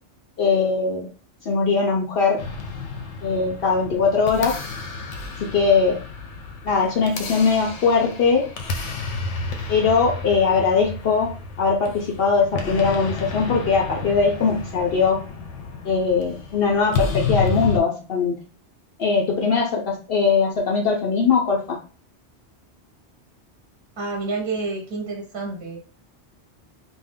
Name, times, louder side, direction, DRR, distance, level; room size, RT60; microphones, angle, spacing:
voice 1, 0.4-1.1 1.4-2.4 3.2-4.6 5.5-6.0 6.6-8.4 9.7-11.3 11.6-15.2 15.8-18.4 19.0-21.8, left 5 dB, 60° left, 0 dB, 0.8 m, -20 dB
sound 1, 2.4-17.8, left 4 dB, 90° left, 0.9 m, -31 dB
voice 2, 24.0-25.8, right 3 dB, 30° right, 0 dB, 0.7 m, -29 dB
2.6 x 2.1 x 3.4 m, 0.36 s
omnidirectional pair, 1.2 m